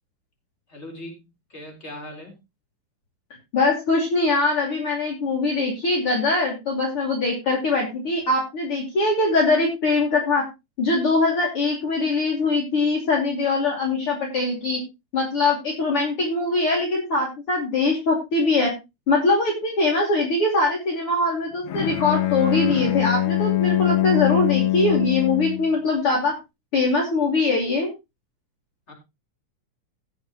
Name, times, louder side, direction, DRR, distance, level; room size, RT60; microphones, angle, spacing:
voice 1, 0.7-2.3 28.9-29.0, left 1 dB, 20° left, 2 dB, 4.4 m, -39 dB
voice 2, 3.5-10.4 10.8-14.8 15.1-18.7 19.1-26.4 26.7-27.9, left 3 dB, 50° left, -1 dB, 3.4 m, -22 dB
Bowed string instrument, 21.7-25.7, left 15 dB, 85° left, 2.6 m, -23 dB
17.0 x 7.7 x 3.0 m, 0.24 s
omnidirectional pair, 3.4 m